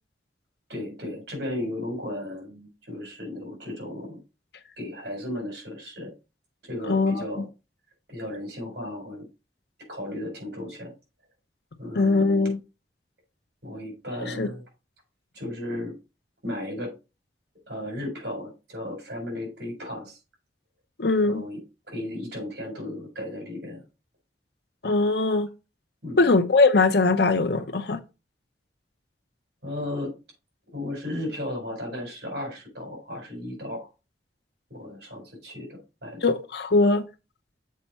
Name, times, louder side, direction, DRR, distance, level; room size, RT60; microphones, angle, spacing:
voice 1, 0.7-4.2 4.8-6.1 6.6-7.5 8.1-9.2 9.9-10.9 11.8-12.5 13.6-14.6 15.3-16.0 16.4-16.9 17.7-20.2 21.2-23.8 26.0-26.3 29.6-30.2 30.7-33.9 34.7-36.2, left 1 dB, 70° right, 4.5 m, -35 dB
voice 2, 6.9-7.2 11.9-12.6 14.4-14.5 21.0-21.4 24.8-25.5 26.2-28.0 36.2-37.1, left 3 dB, 65° left, 0.7 m, -21 dB
7.5 x 4.5 x 4.2 m
head